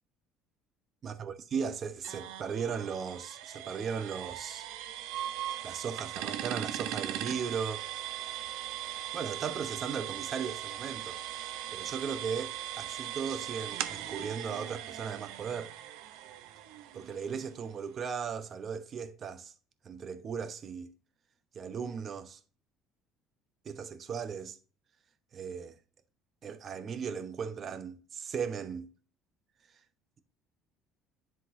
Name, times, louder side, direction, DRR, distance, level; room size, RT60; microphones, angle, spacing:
voice 1, 1.0-4.7 5.6-7.9 9.1-11.5 11.7-15.7 16.9-19.5 19.8-20.9 21.5-22.4 23.6-24.6 25.3-25.7 26.4-28.9, right 6 dB, 40° right, 0.8 m, -37 dB
sound 1, 2.0-17.7, right 12 dB, 80° right, 0.6 m, -39 dB
10.0 x 3.9 x 2.6 m
cardioid pair, 115°, 0 cm